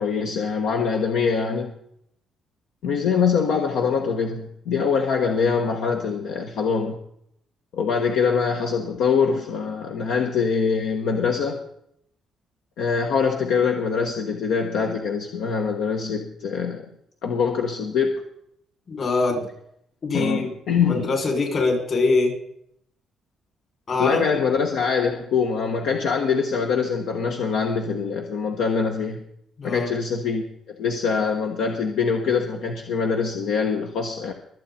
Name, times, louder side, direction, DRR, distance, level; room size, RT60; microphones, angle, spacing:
voice 1, 0.0-1.7 2.8-7.0 7.7-11.6 12.8-16.9 17.2-18.1 20.1-21.1 24.0-29.2 29.6-34.3, left 5 dB, 85° left, 3 dB, 1.3 m, -24 dB
voice 2, 18.9-19.4 20.0-20.5 20.9-22.3 23.9-24.3 29.6-29.9, left 3 dB, 55° left, 1 dB, 6.4 m, -23 dB
24.0 x 8.2 x 4.3 m, 0.71 s
cardioid pair, 90°, 0 cm